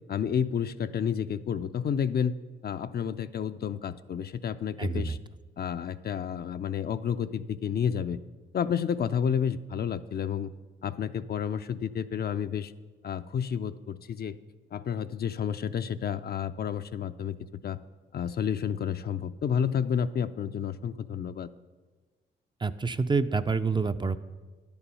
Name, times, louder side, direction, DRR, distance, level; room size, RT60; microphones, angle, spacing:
voice 1, 0.1-2.3 2.6-5.2 5.6-8.2 8.5-10.5 10.8-12.7 13.0-14.4 14.7-17.4 17.6-17.8 18.1-21.5, left 8 dB, 50° left, 11 dB, 0.5 m, -30 dB
voice 2, 4.8-5.2 22.6-24.2, right 4 dB, 20° right, 11 dB, 0.4 m, -27 dB
10.0 x 7.0 x 5.5 m, 1.3 s
supercardioid pair, 50°, 21 cm